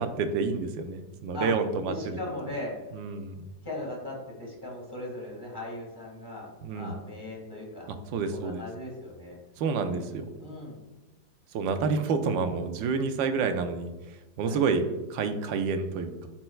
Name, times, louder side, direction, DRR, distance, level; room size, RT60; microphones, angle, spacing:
voice 1, 0.0-2.2 2.9-3.5 6.6-7.0 7.9-8.6 9.6-10.3 11.5-13.9 14.4-16.3, right 5 dB, 80° right, 8 dB, 1.3 m, -29 dB
voice 2, 1.8-2.7 3.6-6.5 6.7-7.9 8.3-9.4 9.8-10.8 14.4-14.6, left 1 dB, 10° left, -3 dB, 1.8 m, -38 dB
11.5 x 4.4 x 2.3 m, 1.1 s
omnidirectional pair, 2.1 m